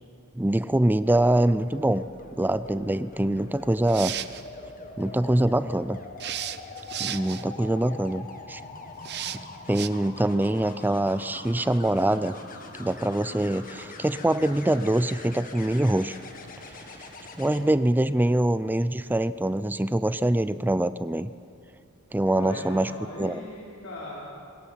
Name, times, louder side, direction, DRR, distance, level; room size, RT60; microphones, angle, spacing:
voice 1, 0.4-2.0 2.4-4.1 5.0-6.0 7.0-8.6 9.2-9.3 9.7-12.4 12.8-16.2 17.4-21.3 22.1-22.9 23.2-23.4, right 1 dB, 10° right, 15 dB, 0.4 m, -24 dB
sound 1, 1.5-17.6 19.5-19.8, left 3 dB, 40° left, 1.8 m, -43 dB
sound 2, 3.7-4.4 6.2-7.4 9.0-9.4 9.7-9.9, right 11 dB, 50° right, 0.7 m, -34 dB
voice 2, 22.3-24.3, left 1 dB, 65° left, -6 dB, 4.4 m, -38 dB
24.0 x 20.5 x 5.7 m, 2.4 s
head